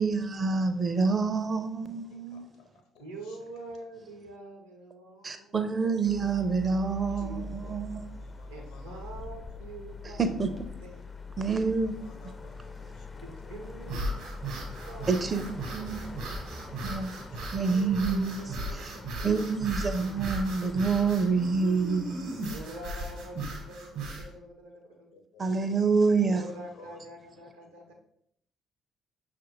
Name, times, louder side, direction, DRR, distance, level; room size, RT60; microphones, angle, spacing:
voice 1, 0.0-2.5 5.2-8.0 10.2-10.5 11.4-11.9 15.1-16.0 16.8-17.1 17.5-18.4 19.2-22.3 25.4-26.4, right 4 dB, 35° right, 0.5 m, -27 dB
voice 2, 2.1-3.5 7.3-9.2 11.5-13.5 16.7-17.4 19.9-20.7 21.7-22.5 22.8-22.9 25.1-25.5 26.0-27.0 27.6-27.9, left 3 dB, 65° left, 0.6 m, -57 dB
voice 3, 3.0-5.7 7.2-7.8 8.5-10.5 10.8-11.4 11.8-12.3 13.1-14.1 14.9-16.8 17.5-20.5 22.5-25.1 26.2-27.9, right 1 dB, 80° right, 0.7 m, -46 dB
sound 1, 6.0-23.8, left 3 dB, 30° left, 0.4 m, -44 dB
sound 2, 13.8-24.3, right 1 dB, 65° right, 1.0 m, -37 dB
5.9 x 2.5 x 2.9 m
figure-of-eight pair, 45°, 0 cm